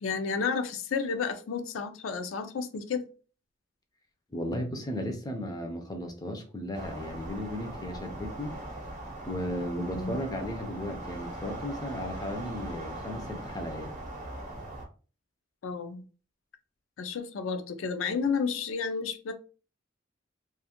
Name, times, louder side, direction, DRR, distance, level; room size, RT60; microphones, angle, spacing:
voice 1, 0.0-3.1 9.8-10.2 15.6-16.0 17.0-19.3, left 5 dB, 80° left, 0.4 m, -31 dB
voice 2, 4.3-8.5 9.2-13.9, equal, 20° left, 0.4 m, -35 dB
sound 1, 6.7-14.8, right 1 dB, 40° right, 0.7 m, -40 dB
2.4 x 2.3 x 2.8 m
head